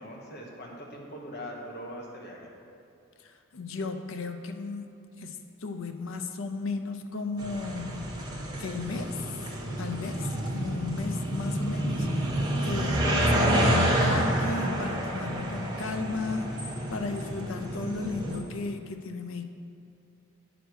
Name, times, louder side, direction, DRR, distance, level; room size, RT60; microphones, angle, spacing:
voice 1, 0.0-2.5, equal, 45° left, -1 dB, 1.3 m, -41 dB
voice 2, 3.2-4.9 5.2-8.2 8.6-9.2 9.8-12.3 12.6-13.7 14.0-16.6 16.9-19.4, left 3 dB, 60° left, 6 dB, 0.6 m, -35 dB
sound 1, 7.4-18.4, equal, 20° right, 1.0 m, -28 dB
9.0 x 5.0 x 6.2 m, 2.5 s
head